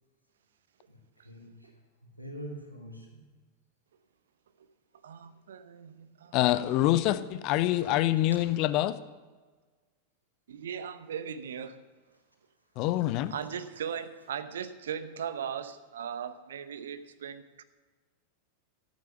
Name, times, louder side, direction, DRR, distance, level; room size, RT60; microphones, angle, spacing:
voice 1, 0.9-3.4 12.1-12.2, right 1 dB, 90° left, -1 dB, 2.5 m, -45 dB
voice 2, 5.0-6.4 7.3-7.4 10.5-11.8 13.3-17.6, right 8 dB, 65° right, 12 dB, 0.8 m, -38 dB
voice 3, 6.3-9.0 12.8-13.3, left 14 dB, 40° left, 14 dB, 0.6 m, -26 dB
13.0 x 9.4 x 5.8 m, 1.4 s
figure-of-eight pair, 90°, 0 cm